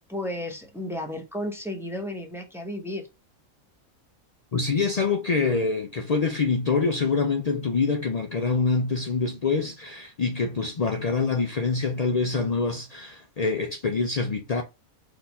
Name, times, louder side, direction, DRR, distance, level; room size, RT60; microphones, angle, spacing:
voice 1, 0.1-3.1, left 1 dB, ahead, 0.7 m, -33 dB
voice 2, 4.5-14.6, left 4 dB, 65° left, 0.3 m, -25 dB
4.4 x 2.9 x 4.0 m
omnidirectional pair, 1.5 m